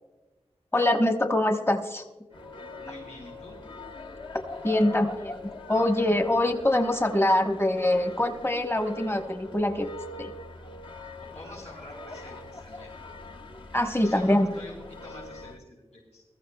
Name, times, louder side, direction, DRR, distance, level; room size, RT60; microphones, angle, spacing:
voice 1, 0.7-2.0 4.6-9.9 10.2-10.3 13.7-14.5, left 1 dB, 20° left, 4 dB, 1.1 m, -24 dB
sound 1, 2.3-15.6, left 2 dB, 45° left, 1.0 m, -42 dB
voice 2, 2.8-3.6 11.2-12.9 13.9-16.2, left 1 dB, 80° left, -8 dB, 4.6 m, -46 dB
21.0 x 14.0 x 2.3 m, 1.2 s
wide cardioid pair, 50°, 12 cm